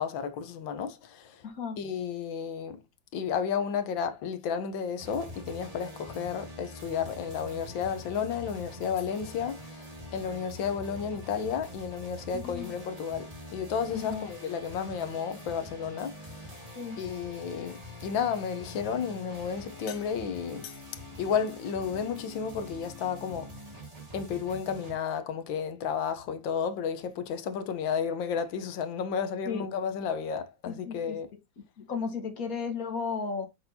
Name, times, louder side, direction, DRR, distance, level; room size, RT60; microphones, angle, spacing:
voice 1, 0.0-1.4 1.8-2.8 3.1-9.9 10.1-16.4 17.0-20.8 21.2-23.5 24.1-31.3, left 7 dB, 75° left, 1.6 m, -32 dB
voice 2, 1.4-1.8 12.3-12.7 13.9-14.3 16.8-17.0 29.5-29.7 30.7-31.2 31.8-33.5, left 5 dB, 50° left, 1.8 m, -34 dB
sound 1, 5.0-24.9, left 1 dB, 20° right, 1.7 m, -45 dB
7.2 x 6.0 x 2.8 m
omnidirectional pair, 2.1 m